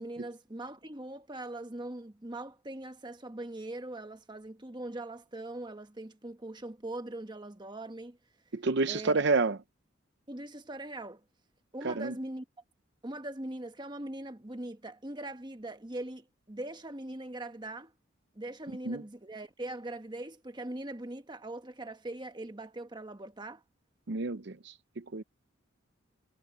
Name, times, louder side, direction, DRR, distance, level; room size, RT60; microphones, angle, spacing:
voice 1, 0.0-8.2 8.9-9.1 10.3-11.2 11.7-12.5 13.0-17.9 18.3-23.6, right 1 dB, 20° right, 1.2 m, -41 dB
voice 2, 8.5-9.6 11.8-12.1 18.7-19.0 24.1-25.2, right 3 dB, 60° right, 0.7 m, -30 dB
head